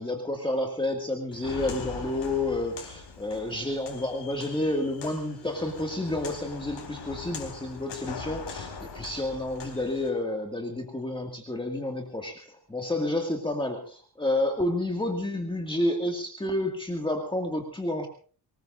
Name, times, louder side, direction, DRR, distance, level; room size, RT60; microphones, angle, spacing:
voice 1, 0.0-18.1, left 1 dB, 10° left, 2 dB, 2.1 m, -30 dB
Walk footsteps, 1.3-10.1, left 5 dB, 90° left, 4.2 m, -41 dB
24.5 x 20.0 x 2.6 m, 0.40 s
wide cardioid pair, 130°, 42 cm